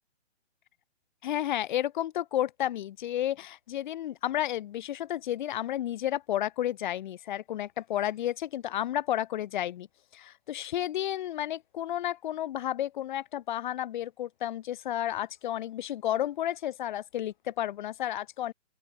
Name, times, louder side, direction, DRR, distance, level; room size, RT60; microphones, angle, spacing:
voice 1, 1.2-9.9 10.1-18.5, left 12 dB, 45° left, 6.4 m, -32 dB
open air
hypercardioid pair, 150°, 34 cm